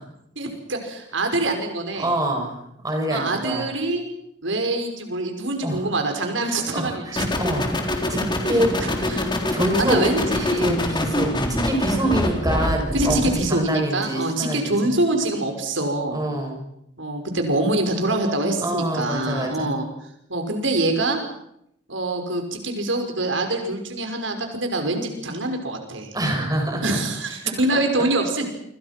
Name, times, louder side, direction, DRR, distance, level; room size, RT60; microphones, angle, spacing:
voice 1, 0.4-2.1 3.1-4.1 4.4-7.3 8.8-9.3 9.8-10.7 12.0-12.2 12.9-16.2 17.0-19.9 20.3-21.2 21.9-26.1 26.8-28.4, right 2 dB, 90° right, 5 dB, 5.5 m, -25 dB
voice 2, 2.0-2.6 2.8-3.7 5.6-5.9 6.4-7.7 8.1-8.2 8.5-8.7 9.5-10.0 10.6-13.2 13.5-14.7 16.1-16.7 18.6-19.7 26.1-27.0 27.4-28.1, right 1 dB, 20° right, 2 dB, 6.9 m, -25 dB
sound 1, 7.2-13.5, left 1 dB, 25° left, 4.0 m, -25 dB
29.0 x 26.0 x 6.0 m, 0.77 s
head